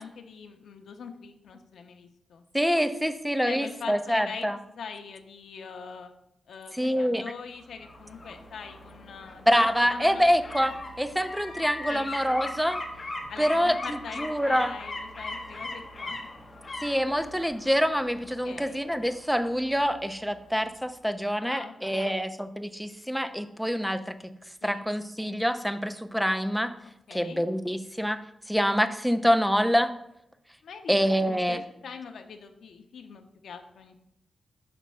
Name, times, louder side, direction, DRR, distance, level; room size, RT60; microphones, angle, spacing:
voice 1, 0.0-2.4 3.4-4.5 4.7-6.1 6.5-10.2 11.9-12.1 13.3-16.3 18.4-18.8 21.3-22.3 24.6-24.9 27.1-27.4 30.6-34.0, left 5 dB, 85° left, 5 dB, 0.5 m, -42 dB
voice 2, 2.5-4.6 6.7-7.2 9.5-12.8 13.4-14.7 16.8-24.3 24.6-26.7 27.1-28.2 28.5-29.9 30.9-31.6, equal, ahead, 9 dB, 0.3 m, -26 dB
sound 1, 7.6-20.4 20.7-20.8, left 2 dB, 30° left, 0.7 m, -40 dB
5.9 x 3.0 x 5.5 m, 0.80 s
wide cardioid pair, 155°, 0 cm